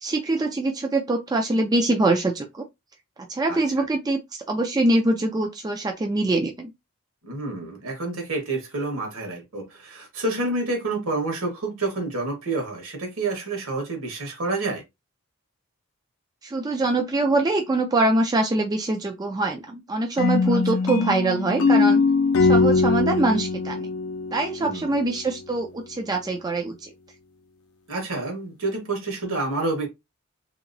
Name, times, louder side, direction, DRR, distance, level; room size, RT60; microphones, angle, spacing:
voice 1, 0.0-2.6 3.3-4.2 4.5-6.7 16.4-22.0 22.4-23.9 24.3-26.9, right 2 dB, 20° right, 0.3 m, -24 dB
voice 2, 3.5-3.8 7.2-14.8 20.5-20.6 24.6-24.9 27.9-29.9, right 2 dB, 65° right, 1.4 m, -29 dB
sound 1, 20.2-25.1, left 4 dB, 70° left, 0.5 m, -21 dB
3.0 x 2.8 x 2.6 m
head